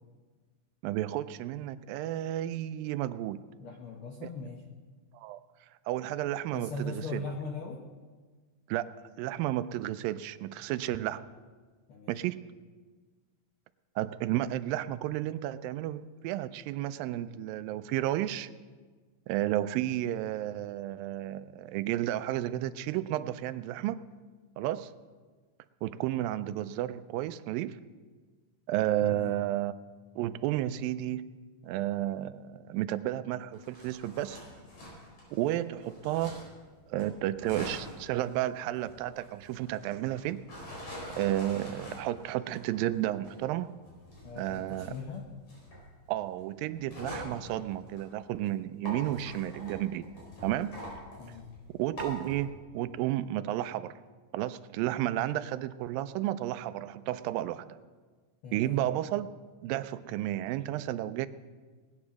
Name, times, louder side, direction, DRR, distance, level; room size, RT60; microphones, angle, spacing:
voice 1, 0.8-3.4 4.2-4.3 5.1-5.4 5.9-7.2 8.7-11.3 12.1-12.4 14.0-18.5 19.3-24.0 24.6-24.9 25.8-27.8 28.7-29.7 30.2-31.3 31.6-34.4 35.3-36.4 36.9-40.4 40.7-40.8 41.2-43.8 44.4-44.9 46.1-50.1 50.4-50.8 51.7-54.0 54.3-57.8 58.5-59.3 59.6-61.3, right 13 dB, 85° right, 14 dB, 2.3 m, -32 dB
voice 2, 3.6-4.7 6.5-7.9 11.9-12.2 29.0-29.3 44.2-45.3 51.2-51.5 58.4-58.8, left 3 dB, 90° left, 3 dB, 1.1 m, -40 dB
sound 1, 33.5-36.6 37.0-48.5 48.8-52.4, equal, 55° left, 5.8 m, -45 dB
19.0 x 9.8 x 6.2 m, 1.4 s
omnidirectional pair, 4.0 m